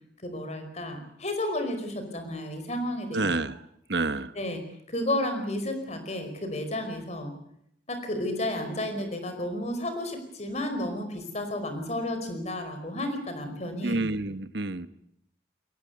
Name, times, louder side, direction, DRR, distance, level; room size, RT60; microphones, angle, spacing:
voice 1, 0.2-3.3 4.3-7.3 7.9-14.0, left 1 dB, 40° left, 7 dB, 5.0 m, -32 dB
voice 2, 3.1-3.6 3.9-4.3 13.8-14.9, right 2 dB, 65° right, 12 dB, 1.2 m, -28 dB
23.0 x 18.0 x 9.4 m, 0.72 s
head